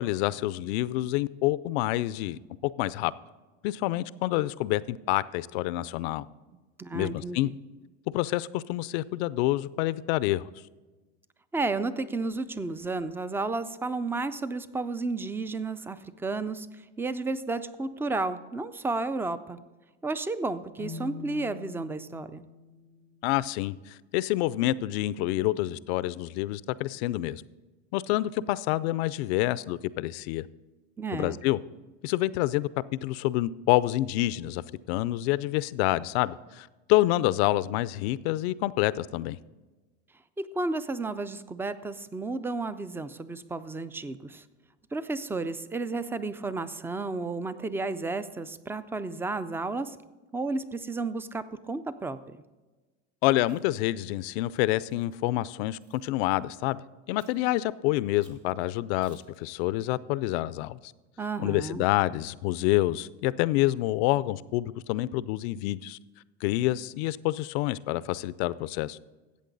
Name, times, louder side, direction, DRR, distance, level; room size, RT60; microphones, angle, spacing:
voice 1, 0.0-3.1 3.6-6.3 6.9-7.5 8.1-10.4 23.2-27.4 27.9-30.4 31.1-31.6 32.0-32.7 33.0-34.6 34.9-39.4 53.2-56.8 57.1-60.9 61.4-66.0 66.4-69.0, left 16 dB, 75° left, 18 dB, 0.5 m, -27 dB
voice 2, 6.8-7.4 11.5-19.6 20.0-22.4 31.0-31.4 40.4-44.4 44.9-50.0 50.3-52.4 61.2-61.8, right 3 dB, 5° right, 14 dB, 0.3 m, -32 dB
sound 1, 20.8-24.7, left 5 dB, 55° right, 2.7 m, -45 dB
Chewing mastication, 53.4-53.9 54.5-55.2 55.8-56.1 57.2-57.5 58.2-58.5 59.0-59.4, right 5 dB, 85° right, 2.4 m, -61 dB
14.0 x 8.4 x 3.9 m, 1.2 s
supercardioid pair, 120°, 32 cm